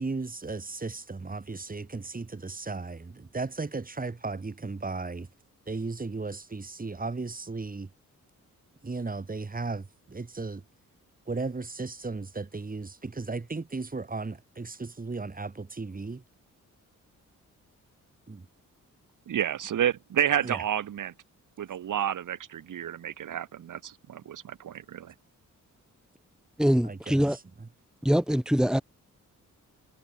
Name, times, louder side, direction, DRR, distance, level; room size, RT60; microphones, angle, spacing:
voice 1, 0.0-5.3 5.7-7.9 8.8-10.6 11.3-16.2 18.3-18.5 20.4-20.6 26.8-27.7, right 3 dB, 25° right, 7.4 m, -35 dB
voice 2, 19.3-21.1 21.6-25.1, right 10 dB, 80° right, 2.4 m, -30 dB
voice 3, 26.6-27.4 28.0-28.8, equal, ahead, 2.3 m, -23 dB
cardioid pair, 110°, 31 cm